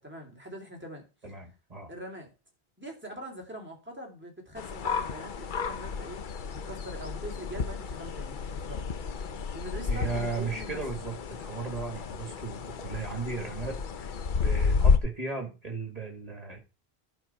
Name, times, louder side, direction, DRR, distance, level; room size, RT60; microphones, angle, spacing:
voice 1, 0.0-1.0 1.9-2.3 2.8-6.2 6.5-8.9 9.5-10.8, equal, 10° right, 2.8 m, -43 dB
voice 2, 1.2-1.9 9.9-16.6, right 4 dB, 40° right, 2.5 m, -36 dB
sound 1, 4.6-15.0, left 5 dB, 55° left, 0.8 m, -31 dB
11.0 x 5.4 x 4.4 m
omnidirectional pair, 1.0 m